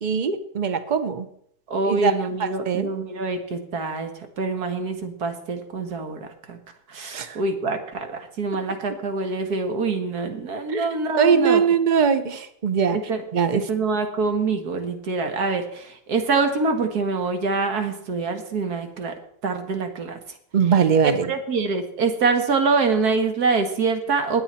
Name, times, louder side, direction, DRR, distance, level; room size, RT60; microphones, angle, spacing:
voice 1, 0.0-1.3 1.9-2.1 2.4-2.9 7.1-7.4 10.7-10.9 11.2-13.0 13.3-13.6 20.5-21.3, right 6 dB, 35° right, 11 dB, 0.9 m, -21 dB
voice 2, 1.7-4.1 4.4-6.6 6.9-11.6 12.9-13.2 13.5-19.1 19.4-20.2 21.0-24.4, right 4 dB, 80° right, 6 dB, 2.1 m, -25 dB
21.0 x 8.0 x 4.3 m, 0.67 s
omnidirectional pair, 1.6 m